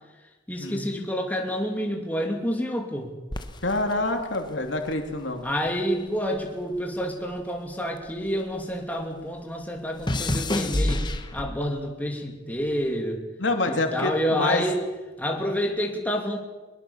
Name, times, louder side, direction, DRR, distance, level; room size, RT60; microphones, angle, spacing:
voice 1, 0.5-3.1 5.4-13.2 13.7-14.8 15.2-16.4, equal, 10° left, 1 dB, 2.8 m, -28 dB
sound 1, 3.3-5.8 6.1-8.7 9.0-11.8 12.6-12.9, left 1 dB, 25° left, 1.3 m, -30 dB
voice 2, 3.6-5.4 13.4-14.6, left 2 dB, 85° left, 4 dB, 2.7 m, -26 dB
21.5 x 21.5 x 7.1 m, 1.2 s
head